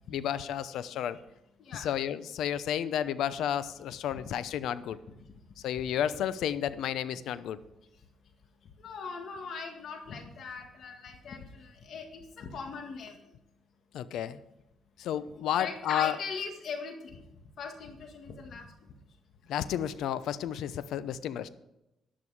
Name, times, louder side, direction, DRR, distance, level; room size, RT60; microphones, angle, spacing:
voice 1, 0.1-1.2 1.7-5.0 5.6-7.6 13.9-14.4 15.0-16.2 19.5-21.5, left 10 dB, 80° left, 15 dB, 0.7 m, -32 dB
voice 2, 8.8-13.1 15.5-17.2 17.6-18.7, left 5 dB, 65° left, 4 dB, 1.8 m, -40 dB
12.0 x 11.5 x 4.9 m, 0.91 s
cardioid pair, 90°, 0 cm